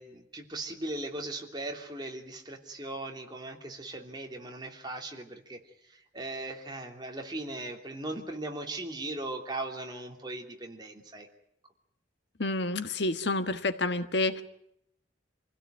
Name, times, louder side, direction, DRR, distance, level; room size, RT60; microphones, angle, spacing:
voice 1, 0.0-11.3, right 2 dB, 20° right, 2 dB, 3.0 m, -39 dB
voice 2, 12.4-14.4, left 2 dB, 65° left, 9 dB, 1.5 m, -29 dB
27.0 x 16.5 x 9.3 m, 0.77 s
head